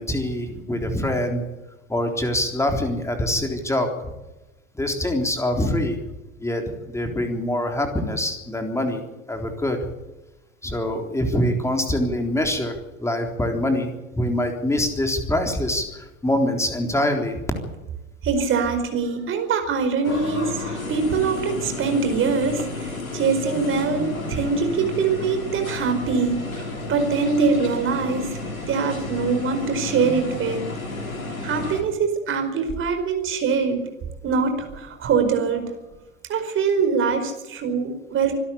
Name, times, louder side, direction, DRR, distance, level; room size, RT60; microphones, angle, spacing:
voice 1, 0.0-1.4 1.9-4.1 4.7-6.0 6.4-9.0 9.3-9.8 10.6-17.4, left 1 dB, 5° left, 4 dB, 3.7 m, -24 dB
voice 2, 18.2-28.4 28.7-30.6 31.1-31.2 31.4-33.8 34.2-35.7 36.3-38.4, right 5 dB, 30° right, 7 dB, 5.0 m, -23 dB
sound 1, 20.0-31.8, left 2 dB, 75° left, 4.1 m, -32 dB
26.0 x 12.5 x 8.7 m, 1.1 s
figure-of-eight pair, 85°, 41 cm